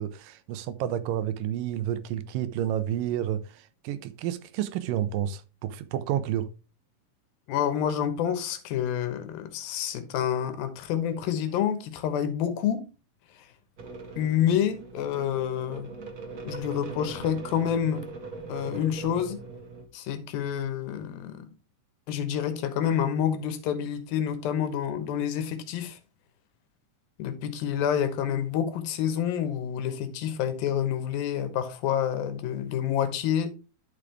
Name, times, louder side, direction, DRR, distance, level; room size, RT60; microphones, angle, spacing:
voice 1, 0.0-6.5, right 11 dB, 80° right, 2.3 m, -30 dB
voice 2, 7.5-12.9 13.3-13.5 14.2-15.9 16.4-18.1 18.5-19.4 19.9-21.5 22.1-26.0 27.2-33.5, left 9 dB, 90° left, 2.8 m, -28 dB
sound 1, 13.8-19.8, right 3 dB, 60° right, 0.9 m, -40 dB
12.0 x 4.9 x 3.3 m
omnidirectional pair, 4.1 m